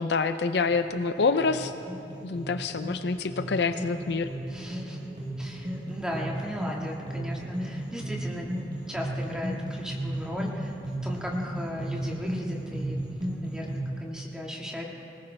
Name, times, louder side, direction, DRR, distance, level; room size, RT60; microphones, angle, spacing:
voice 1, 0.0-1.7 2.2-4.3, left 4 dB, 65° left, 10 dB, 0.5 m, -26 dB
sound 1, 0.7-13.8, right 1 dB, 25° right, 3.9 m, -34 dB
voice 2, 4.5-5.1 5.4-8.5 8.9-10.8 11.0-13.0 13.4-14.8, equal, 5° right, -2 dB, 1.8 m, -37 dB
20.5 x 19.0 x 3.3 m, 2.8 s
head